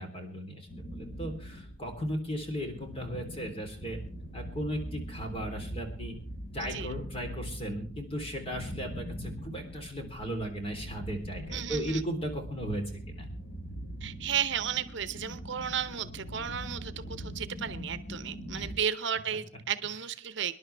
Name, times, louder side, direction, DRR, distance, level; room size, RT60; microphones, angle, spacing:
voice 1, 0.0-4.0 4.3-6.2 6.5-13.3 18.5-18.7, equal, 30° left, 4 dB, 3.5 m, -36 dB
sound 1, 0.7-18.8, equal, 85° left, 2.5 m, -42 dB
voice 2, 11.5-12.0 14.0-20.5, right 8 dB, 65° right, 13 dB, 0.8 m, -34 dB
25.0 x 11.0 x 3.4 m, 0.39 s
head